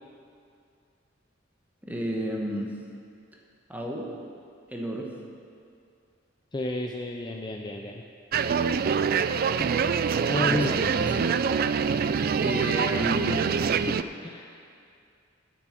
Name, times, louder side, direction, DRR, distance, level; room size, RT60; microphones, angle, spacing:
voice 1, 1.8-2.7 3.7-4.1 4.7-5.1 9.5-9.8 10.1-11.3 12.4-13.4, equal, 10° right, -1 dB, 1.3 m, -32 dB
voice 2, 6.5-8.0 10.3-10.8 13.9-14.5, left 1 dB, 25° left, 2 dB, 0.5 m, -31 dB
sound 1, 8.3-14.0, right 6 dB, 50° right, 0.3 m, -25 dB
9.8 x 7.8 x 7.5 m, 2.4 s
head